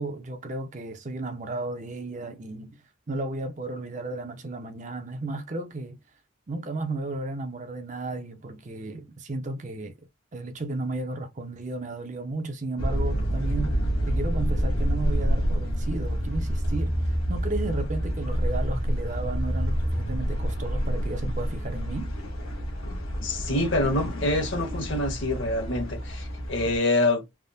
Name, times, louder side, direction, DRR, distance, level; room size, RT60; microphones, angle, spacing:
voice 1, 0.0-2.8 3.1-6.0 6.5-9.9 10.3-13.8 14.0-22.1, right 2 dB, 35° right, 0.5 m, -34 dB
sound 1, 12.8-26.8, equal, 85° left, 1.0 m, -28 dB
voice 2, 23.2-27.2, left 2 dB, 65° left, 1.2 m, -26 dB
3.4 x 2.0 x 2.6 m
head